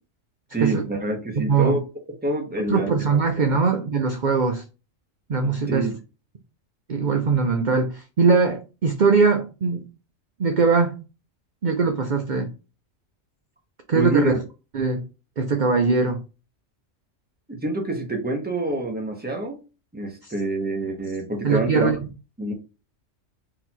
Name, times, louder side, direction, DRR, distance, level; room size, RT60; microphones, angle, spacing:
voice 1, 0.5-1.8 2.2-2.9 5.7-6.0 13.9-14.4 17.5-19.6 19.9-21.9 22.4-22.5, right 2 dB, 10° right, 0.9 m, -26 dB
voice 2, 1.4-1.7 2.7-4.6 5.3-5.9 6.9-9.8 10.4-11.0 11.6-12.5 13.9-14.3 14.7-15.0 15.4-16.2 20.2-20.3 21.4-22.1, right 4 dB, 50° right, 0.6 m, -21 dB
3.9 x 2.7 x 4.4 m
omnidirectional pair, 1.3 m